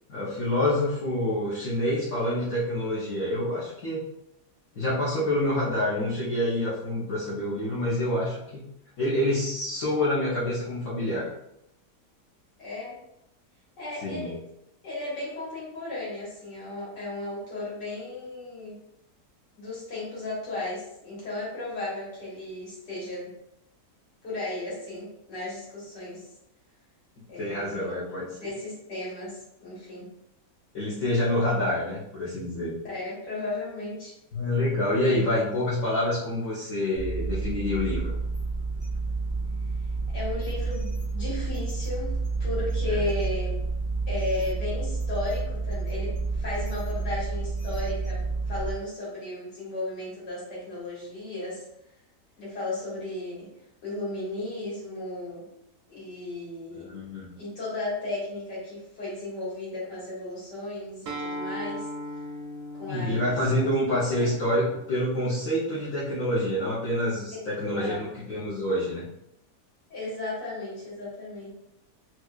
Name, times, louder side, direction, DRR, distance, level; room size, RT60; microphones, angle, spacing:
voice 1, 0.1-4.0 4.8-8.7 9.0-11.3 14.0-14.3 27.4-28.3 30.7-32.7 34.3-38.2 42.9-43.0 56.9-57.3 62.9-69.0, left 1 dB, 60° left, -9 dB, 1.1 m, -27 dB
voice 2, 12.6-13.0 13.8-14.4 14.8-18.8 19.6-23.3 24.2-26.3 27.3-27.9 28.4-30.1 32.8-34.2 40.1-43.6 44.1-51.6 52.4-53.5 53.8-55.5 55.9-56.9 57.4-61.9 62.7-63.7 64.2-64.3 67.3-67.5 67.8-68.0 69.9-71.5, left 2 dB, 90° left, -7 dB, 2.2 m, -35 dB
sound 1, 36.9-48.7, right 3 dB, 30° right, 0.5 m, -30 dB
Acoustic guitar, 61.1-66.3, equal, 70° right, 1.1 m, -39 dB
4.4 x 2.3 x 2.3 m, 0.81 s
omnidirectional pair, 1.8 m